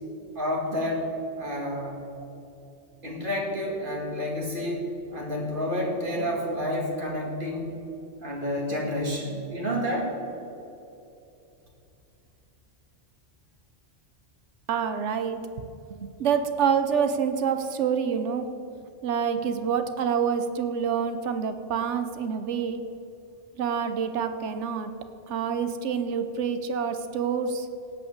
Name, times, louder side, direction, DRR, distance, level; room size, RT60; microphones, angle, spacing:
voice 1, 0.4-1.1 1.4-2.0 3.0-7.7 8.2-10.1, left 1 dB, 45° right, -1 dB, 2.4 m, -29 dB
voice 2, 14.7-15.6 16.0-18.5 19.0-22.8 23.6-24.9 25.3-27.7, right 7 dB, 85° right, 9 dB, 1.1 m, -27 dB
17.0 x 5.8 x 8.1 m, 2.9 s
omnidirectional pair, 1.2 m